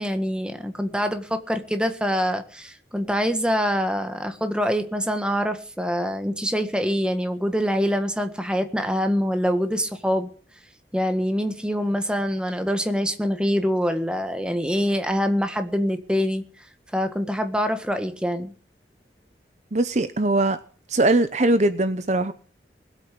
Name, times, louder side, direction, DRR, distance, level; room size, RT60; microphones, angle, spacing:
voice 1, 0.0-10.3 10.9-16.4 16.9-18.5, equal, 5° right, 1.6 m, -25 dB
voice 2, 19.7-20.6 20.9-22.3, right 2 dB, 40° right, 0.8 m, -21 dB
20.5 x 8.4 x 7.7 m
head